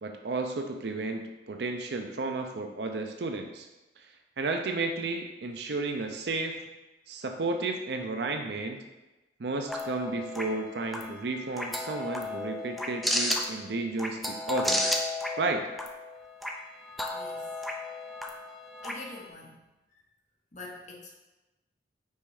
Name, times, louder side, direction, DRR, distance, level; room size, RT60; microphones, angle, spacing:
voice 1, 0.0-3.7 4.0-4.1 4.4-6.6 7.1-8.8 9.4-14.9 15.4-15.6, right 3 dB, 65° right, 5 dB, 0.5 m, -32 dB
sound 1, 9.7-19.3, left 1 dB, ahead, 0.4 m, -33 dB
voice 2, 16.7-17.7 18.8-19.6 19.9-20.0 20.5-21.1, left 3 dB, 40° left, -2 dB, 1.0 m, -46 dB
5.5 x 4.2 x 4.8 m, 1.1 s
head